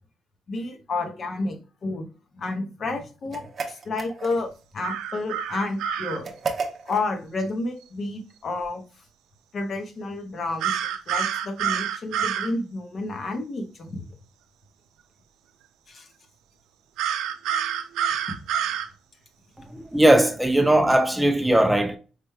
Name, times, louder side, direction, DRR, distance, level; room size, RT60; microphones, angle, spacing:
voice 1, 0.5-2.1 2.3-6.3 6.8-8.8 9.5-10.7 11.1-13.9 15.9-16.1, left 2 dB, 50° left, 0.9 m, -30 dB
sound 1, 3.3-4.6 6.2-7.1, right 4 dB, 45° right, 0.8 m, -32 dB
sound 2, 4.8-6.2 10.6-12.5 17.0-18.9, right 9 dB, 90° right, 0.4 m, -27 dB
voice 2, 19.7-22.0, right 1 dB, 5° right, 0.4 m, -19 dB
5.0 x 3.2 x 2.2 m
cardioid pair, 90°, 0 cm